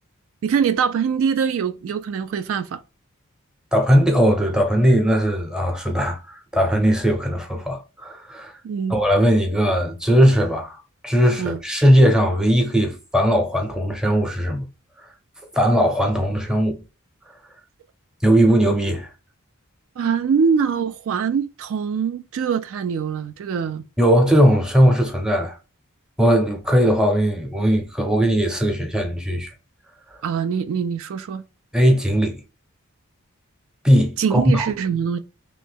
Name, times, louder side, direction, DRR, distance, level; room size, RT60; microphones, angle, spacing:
voice 1, 0.4-2.8 8.6-8.9 11.4-11.6 20.0-23.8 30.2-31.4 34.2-35.2, right 6 dB, 65° right, 0.3 m, -23 dB
voice 2, 3.7-8.5 8.9-10.8 11.0-14.7 15.5-16.8 18.2-19.1 24.0-25.5 26.2-29.5 31.7-32.4 33.8-34.7, equal, 5° right, 0.7 m, -18 dB
3.1 x 2.5 x 3.4 m
head